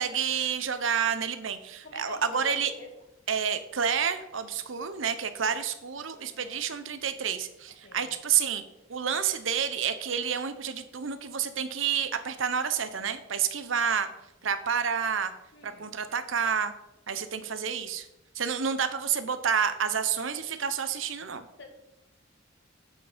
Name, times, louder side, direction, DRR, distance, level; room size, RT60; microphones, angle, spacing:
voice 1, 0.0-2.7 3.3-8.6 8.9-14.1 14.4-15.3 15.6-16.7 17.1-18.1 18.3-21.5, right 7 dB, 70° right, 11 dB, 0.8 m, -29 dB
voice 2, 1.8-3.1 6.3-6.6 7.8-8.2 15.5-15.9 21.6-21.7, left 1 dB, 60° left, 2 dB, 2.0 m, -47 dB
7.9 x 7.1 x 5.1 m, 0.90 s
head